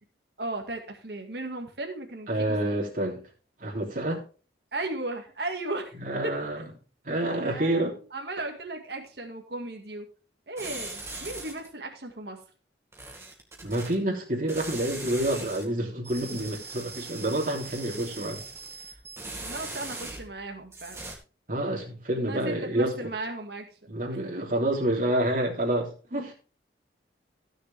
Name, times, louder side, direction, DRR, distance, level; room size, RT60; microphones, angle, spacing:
voice 1, 0.4-2.8 4.7-5.9 6.2-6.3 7.4-10.1 10.5-12.4 19.4-21.0 22.3-23.7 24.1-24.2, right 2 dB, 65° right, 3 dB, 2.0 m, -36 dB
voice 2, 2.3-3.2 3.6-4.2 6.0-6.7 7.0-8.0 13.6-18.4 21.5-23.1 23.9-26.3, right 1 dB, 50° right, -1 dB, 3.3 m, -28 dB
sound 1, 10.6-11.7 12.9-13.9 14.5-15.6 16.0-20.4 20.7-21.1, right 3 dB, 15° right, 2.1 m, -40 dB
15.5 x 6.7 x 3.5 m, 0.36 s
head